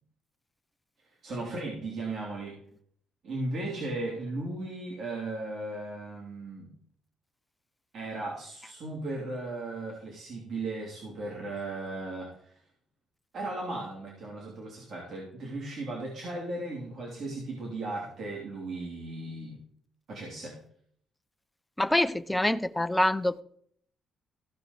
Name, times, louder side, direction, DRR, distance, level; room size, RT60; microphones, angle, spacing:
voice 1, 1.2-2.6 3.2-6.7 7.9-12.5 13.3-19.6 20.1-20.6, right 2 dB, 60° right, 3.1 m, -36 dB
voice 2, 21.8-23.4, left 1 dB, 10° left, 0.6 m, -25 dB
15.5 x 5.3 x 4.1 m
cardioid pair, 90°, 0 cm